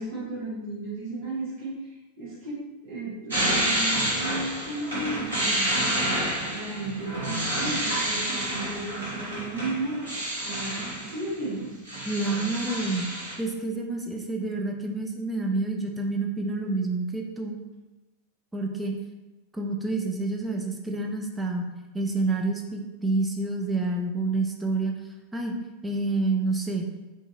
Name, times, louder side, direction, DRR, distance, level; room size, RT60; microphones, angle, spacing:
voice 1, 0.0-10.1 10.4-11.8, right 2 dB, 50° right, -8 dB, 1.0 m, -34 dB
sound 1, 3.3-11.3 11.6-13.3, right 1 dB, 75° right, 0.9 m, -29 dB
voice 2, 12.1-13.1 13.4-17.6 18.5-18.9 19.5-21.7 21.9-24.9 25.3-25.5 25.8-26.9, right 3 dB, 10° right, 1 dB, 0.4 m, -28 dB
2.8 x 2.6 x 2.4 m, 1.1 s
figure-of-eight pair, 90°, 0 cm